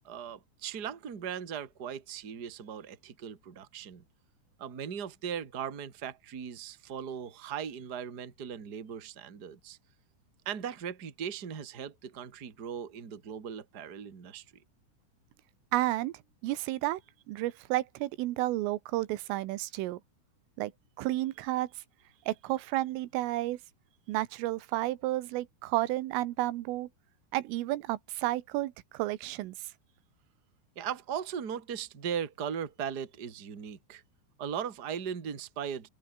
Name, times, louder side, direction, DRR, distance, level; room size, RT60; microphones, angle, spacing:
voice 1, 0.0-4.0 4.6-9.8 10.5-14.4 30.8-34.0 34.4-35.9, right 8 dB, 30° right, 1.8 m, -38 dB
voice 2, 15.7-16.1 16.4-17.0 17.3-20.0 20.6-20.7 21.0-21.7 22.3-23.6 24.1-26.9 27.3-29.7, right 16 dB, 90° right, 3.8 m, -31 dB
open air
omnidirectional pair, 5.6 m